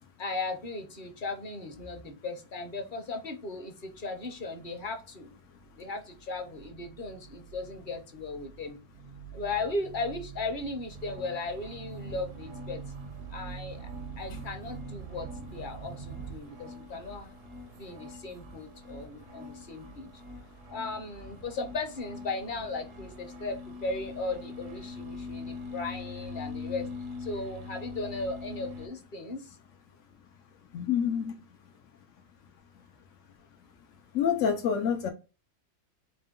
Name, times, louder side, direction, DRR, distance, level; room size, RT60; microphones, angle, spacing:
voice 1, 0.2-5.3 5.7-8.8 9.3-12.8 13.3-13.9 14.2-17.4 17.7-20.1 20.7-26.9 27.2-29.6, left 3 dB, 45° left, 0.9 m, -37 dB
sound 1, 3.9-4.0 4.3-5.2 5.5-16.4, right 7 dB, 55° right, 0.6 m, -45 dB
sound 2, 10.9-28.9, left 3 dB, 85° right, 1.2 m, -44 dB
voice 2, 30.7-31.3 34.1-35.1, left 7 dB, 90° left, 1.0 m, -27 dB
4.4 x 2.2 x 3.6 m
omnidirectional pair, 1.3 m